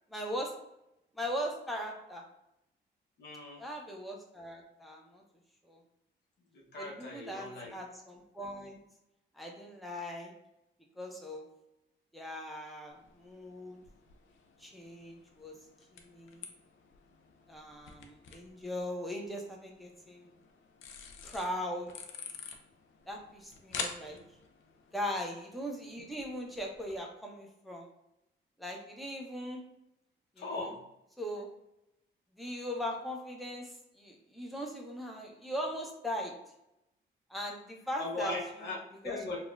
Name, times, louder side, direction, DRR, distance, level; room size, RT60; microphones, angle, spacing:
voice 1, 0.1-0.6 1.1-2.2 3.6-5.2 5.6-5.8 6.8-8.8 9.3-10.3 11.0-11.4 12.1-13.8 14.6-15.5 15.9-16.5 17.5-20.3 21.2-21.9 23.1-24.2 24.9-27.9 28.6-29.6 30.4-30.7 31.2-31.5 32.4-36.3 37.3-38.4 39.0-39.2, equal, ahead, -1 dB, 0.7 m, -39 dB
voice 2, 3.2-3.6 6.5-7.7 24.0-24.2 30.4-30.8 38.0-39.4, left 2 dB, 60° left, -3 dB, 0.9 m, -39 dB
sound 1, 12.9-27.0, left 6 dB, 80° left, 0.5 m, -48 dB
4.0 x 2.4 x 2.4 m, 0.86 s
cardioid pair, 90°, 20 cm